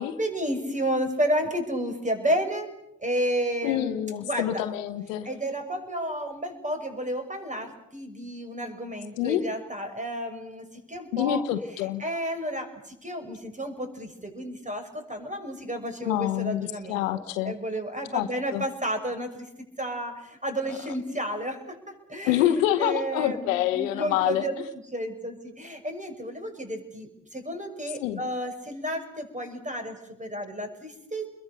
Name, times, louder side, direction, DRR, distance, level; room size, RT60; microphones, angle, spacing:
voice 1, 0.2-2.7 3.0-4.6 5.2-11.4 11.7-17.0 17.4-19.5 19.8-24.5 24.9-31.3, equal, 20° right, 6 dB, 6.3 m, -31 dB
voice 2, 3.6-5.3 9.2-9.4 11.1-12.0 16.0-17.5 18.1-18.6 20.7-20.8 22.2-24.5 28.0-28.2, left 12 dB, 85° left, 10 dB, 1.0 m, -26 dB
29.5 x 22.0 x 6.8 m, 0.84 s
hypercardioid pair, 45°, 38 cm